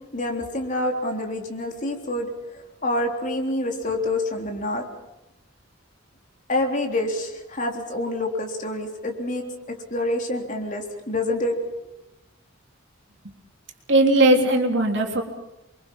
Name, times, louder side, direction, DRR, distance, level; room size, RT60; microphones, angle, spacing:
voice 1, 0.0-4.8 6.5-11.6, left 1 dB, 40° left, 2 dB, 3.6 m, -27 dB
voice 2, 13.9-15.2, right 1 dB, 65° right, 2 dB, 3.6 m, -18 dB
28.0 x 24.0 x 5.6 m, 0.94 s
head